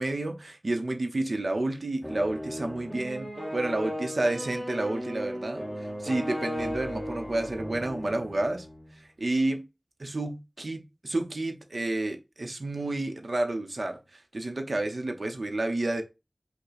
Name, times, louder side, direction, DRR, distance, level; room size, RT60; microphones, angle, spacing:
voice 1, 0.0-8.7 9.0-9.7 10.0-16.0, right 2 dB, 80° right, 0.9 m, -30 dB
sound 1, 2.0-9.0, equal, 5° right, 1.2 m, -36 dB
5.5 x 2.3 x 4.0 m
wide cardioid pair, 45°, 0 cm